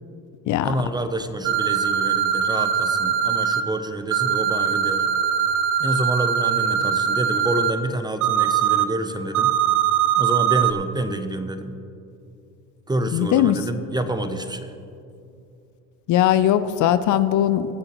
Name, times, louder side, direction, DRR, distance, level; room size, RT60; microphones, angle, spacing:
voice 1, 0.6-5.1 5.8-9.5 10.2-11.8 12.9-14.7, right 1 dB, 10° right, 9 dB, 0.7 m, -28 dB
sound 1, 1.4-3.6 4.1-7.7 8.2-8.8 9.3-10.7, right 9 dB, 60° right, 0.9 m, -21 dB
voice 2, 13.1-13.6 16.1-17.8, left 11 dB, 55° left, 13 dB, 0.6 m, -19 dB
22.0 x 7.7 x 3.0 m, 2.6 s
supercardioid pair, 90°, 35 cm